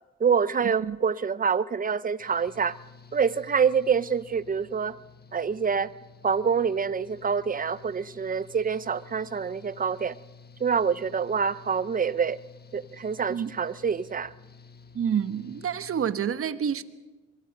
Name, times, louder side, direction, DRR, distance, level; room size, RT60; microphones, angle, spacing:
voice 1, 0.2-2.8 3.1-4.9 5.3-5.9 6.2-10.2 10.6-12.4 12.7-14.3, right 6 dB, 30° right, 0.7 m, -26 dB
Engine / Mechanical fan, 2.2-16.1, left 4 dB, 30° left, 1.4 m, -51 dB
voice 2, 14.9-16.8, right 8 dB, 45° right, 1.2 m, -28 dB
23.5 x 22.5 x 5.3 m
cardioid pair, 90°, 30 cm